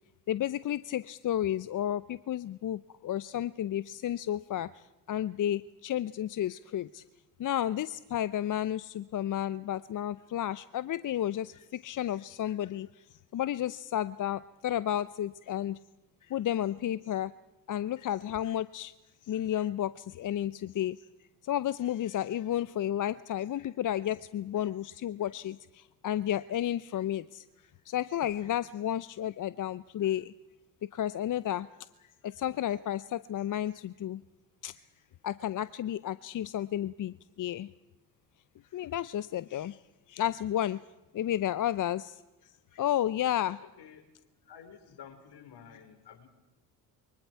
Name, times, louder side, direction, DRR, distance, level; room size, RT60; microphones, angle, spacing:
voice 1, 0.3-7.0 7.4-13.1 13.3-15.8 16.2-17.3 17.7-18.9 19.2-21.0 21.4-27.4 27.9-30.3 30.9-31.7 32.0-34.2 34.6-34.7 35.2-37.7 38.7-39.8 40.1-40.8 41.1-42.2 42.7-43.6, left 11 dB, 40° left, 16 dB, 0.7 m, -32 dB
sound 1, 28.2-28.8, right 4 dB, 35° right, 5.0 m, -56 dB
voice 2, 43.6-44.1 44.4-46.3, left 8 dB, 55° left, 5 dB, 4.5 m, -51 dB
29.5 x 23.5 x 4.6 m, 1.0 s
hypercardioid pair, 60°, 47 cm